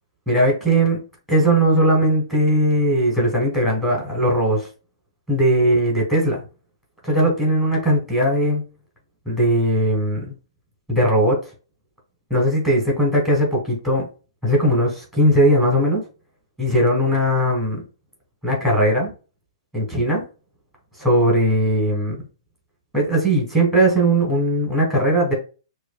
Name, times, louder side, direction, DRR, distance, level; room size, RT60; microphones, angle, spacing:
voice 1, 0.3-1.0 1.3-4.7 5.3-6.4 7.0-8.6 9.2-10.3 10.9-11.4 12.3-14.1 14.4-16.0 16.6-17.8 18.4-19.1 19.7-20.2 21.0-22.2 22.9-25.3, right 1 dB, 5° left, -1 dB, 1.4 m, -19 dB
5.7 x 2.5 x 2.4 m, 0.33 s
hypercardioid pair, 175°, 3 cm